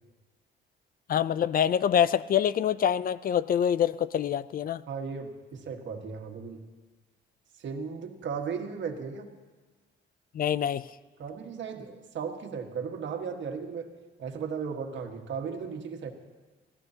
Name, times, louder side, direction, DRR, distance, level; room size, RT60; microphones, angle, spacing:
voice 1, 1.1-4.8 10.3-10.9, left 9 dB, 45° left, 17 dB, 0.4 m, -25 dB
voice 2, 4.9-6.6 7.6-9.3 11.2-13.9 14.2-16.1, right 6 dB, 65° right, 4 dB, 1.6 m, -36 dB
26.0 x 15.5 x 2.8 m, 1.3 s
cardioid pair, 90°, 20 cm